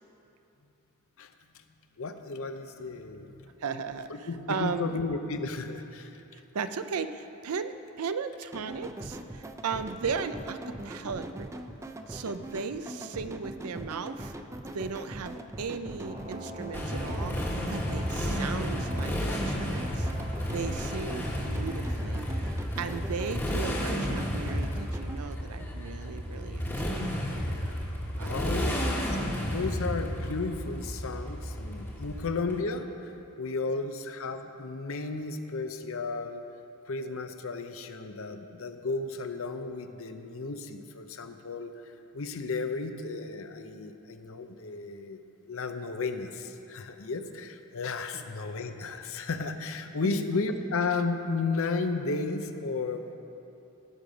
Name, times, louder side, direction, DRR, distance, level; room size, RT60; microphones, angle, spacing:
voice 1, 2.0-3.5 4.1-6.2 28.2-29.1 29.5-32.9 33.4-36.4 36.9-41.7 42.1-45.2 45.5-53.2, left 3 dB, 65° left, 7 dB, 0.7 m, -33 dB
voice 2, 3.6-5.0 6.3-11.5 12.1-14.3 14.7-17.4 17.7-20.1 20.5-27.1 28.2-28.8 48.1-48.3 50.0-50.2, right 5 dB, 75° right, 11 dB, 0.5 m, -36 dB
sound 1, 8.5-25.2, right 1 dB, 15° right, 0.4 m, -41 dB
sound 2, 16.0-23.2, equal, 30° right, 0.9 m, -44 dB
Motorcycle, 16.7-32.5, equal, 10° left, 1.3 m, -32 dB
16.0 x 6.6 x 5.1 m, 2.9 s
head